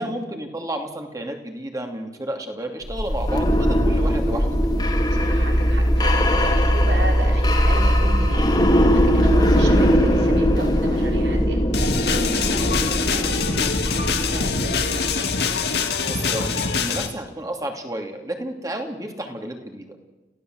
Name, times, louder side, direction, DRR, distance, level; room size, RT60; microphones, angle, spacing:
voice 1, 0.0-4.7 16.1-19.9, right 1 dB, 20° right, 3 dB, 2.7 m, -31 dB
sound 1, 2.9-15.7, equal, 25° left, 2.5 m, -20 dB
voice 2, 5.1-8.4 8.9-11.6 12.1-15.4, right 1 dB, 85° right, 2 dB, 5.0 m, -34 dB
sound 2, 11.7-17.1, left 5 dB, 65° left, 2.1 m, -24 dB
29.5 x 16.0 x 7.9 m, 1.1 s
head